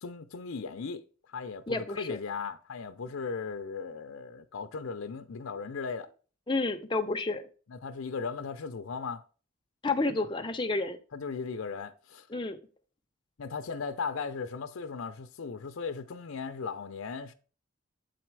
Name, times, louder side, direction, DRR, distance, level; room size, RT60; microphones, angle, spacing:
voice 1, 0.0-1.0 1.3-6.1 7.7-9.2 11.1-12.3 13.4-17.3, left 5 dB, 90° left, 0.6 m, -37 dB
voice 2, 1.7-2.2 6.5-7.5 9.8-11.0 12.3-12.6, left 3 dB, 25° left, 0.7 m, -30 dB
8.1 x 4.2 x 4.6 m
head